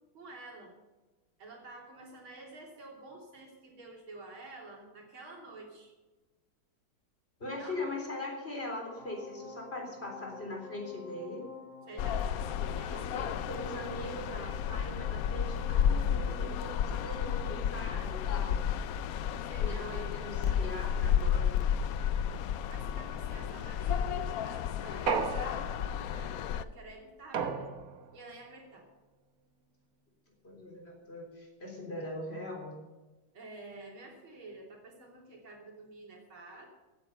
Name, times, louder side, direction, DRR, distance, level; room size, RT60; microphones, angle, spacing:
voice 1, 0.1-0.7 1.4-5.9 7.6-7.9 11.9-13.1 19.5-20.6 22.7-27.7 28.1-28.9 33.3-36.7, right 2 dB, 90° right, 0 dB, 4.0 m, -49 dB
voice 2, 7.4-11.5 12.9-18.7 19.6-21.7 30.4-32.7, left 1 dB, 30° left, 1 dB, 3.9 m, -41 dB
sound 1, 9.0-24.5 24.8-25.0, left 4 dB, 25° right, 5.1 m, -54 dB
sound 2, 12.0-26.6, left 8 dB, 80° left, 0.8 m, -32 dB
sound 3, 25.1-26.1 27.3-28.2, right 5 dB, 55° right, 1.4 m, -33 dB
15.0 x 9.8 x 6.8 m, 1.2 s
omnidirectional pair, 2.2 m